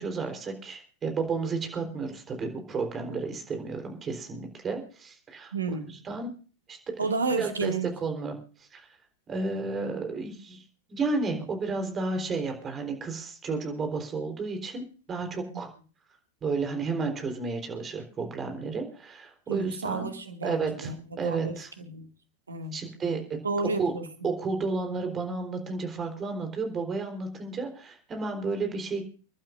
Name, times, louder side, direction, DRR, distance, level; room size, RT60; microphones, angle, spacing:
voice 1, 0.0-5.5 6.0-6.3 6.7-7.0 7.4-7.7 8.0-8.9 9.3-10.6 10.9-15.7 16.4-20.1 20.4-20.9 21.2-21.7 22.7-23.4 23.8-23.9 24.2-29.1, right 4 dB, 25° right, 4 dB, 3.9 m, -32 dB
voice 2, 5.5-5.9 7.0-8.0 15.5-15.6 19.5-21.6 21.8-22.1 22.5-22.8 23.4-24.1, right 4 dB, 75° right, 6 dB, 2.2 m, -31 dB
29.5 x 12.0 x 2.6 m, 0.38 s
figure-of-eight pair, 90°, 0 cm